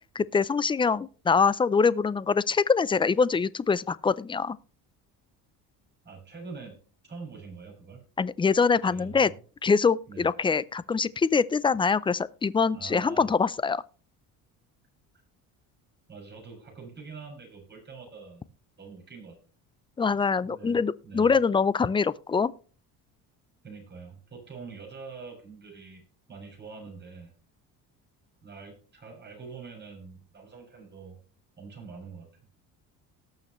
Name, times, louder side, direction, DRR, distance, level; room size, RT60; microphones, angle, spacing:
voice 1, 0.2-4.6 8.2-9.3 9.6-13.8 20.0-22.5, left 5 dB, 15° left, 0.4 m, -24 dB
voice 2, 6.0-6.8 7.0-8.0 8.9-9.4 10.1-10.3 12.7-13.3 16.1-18.5 18.8-19.4 20.4-21.3 23.6-26.0 26.3-27.3 28.4-31.2 31.6-32.3, right 5 dB, 30° right, 6.6 m, -44 dB
18.5 x 6.6 x 3.1 m
cardioid pair, 115°, 36 cm